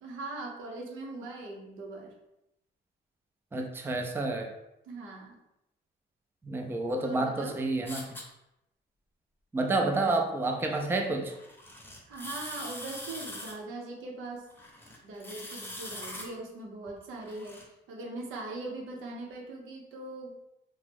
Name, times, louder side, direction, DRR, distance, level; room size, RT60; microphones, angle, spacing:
voice 1, 0.0-2.1 4.9-5.4 7.0-7.6 12.1-14.5 15.0-20.4, right 2 dB, 85° right, 0 dB, 0.7 m, -41 dB
voice 2, 3.5-4.5 6.4-8.1 9.5-11.3, right 2 dB, 10° right, 3 dB, 0.4 m, -29 dB
sound 1, 7.9-8.2 11.3-13.5 14.5-16.3 16.9-17.6, left 1 dB, 10° left, 0.8 m, -42 dB
2.9 x 2.0 x 3.4 m, 0.87 s
cardioid pair, 90°, 20 cm